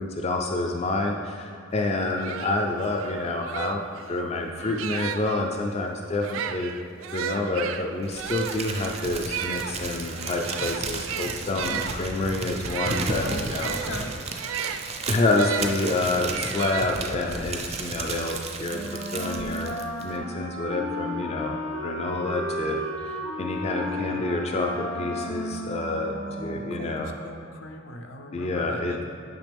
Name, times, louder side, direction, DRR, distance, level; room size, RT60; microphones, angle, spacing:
voice 1, 0.0-3.8 4.1-6.7 7.1-13.7 15.1-19.7 20.0-26.1 26.4-27.1 28.3-29.0, left 2 dB, 30° left, 2 dB, 0.4 m, -28 dB
sound 1, 1.8-1.9 2.2-5.4 6.1-15.7 16.3-17.4, right 8 dB, 85° right, 0.4 m, -34 dB
Crumpling crinkling, 8.1-20.2, right 3 dB, 30° right, 0.5 m, -34 dB
voice 2, 13.2-14.1 23.8-24.2 26.2-29.0, left 2 dB, 70° left, 4 dB, 0.7 m, -39 dB
Wind instrument woodwind instrument, 18.7-26.9, equal, 90° left, 1.2 m, -34 dB
9.2 x 5.8 x 3.4 m, 2.5 s
head